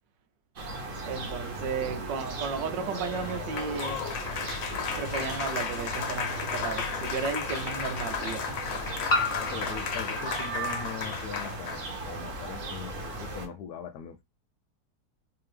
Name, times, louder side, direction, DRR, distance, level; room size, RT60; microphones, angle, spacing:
sound 1, 0.6-13.5, right 2 dB, 50° right, 1.2 m, -37 dB
voice 1, 1.0-4.0 5.0-8.6 9.6-9.7, right 5 dB, 80° right, 1.4 m, -34 dB
Applause, 2.7-11.9, left 7 dB, 90° left, 1.5 m, -35 dB
sound 2, 5.1-5.2 6.9-7.0 9.1-11.6, left 2 dB, 45° left, 0.6 m, -33 dB
voice 2, 9.4-14.2, left 7 dB, 70° left, 1.0 m, -41 dB
3.4 x 2.9 x 3.2 m
omnidirectional pair, 1.9 m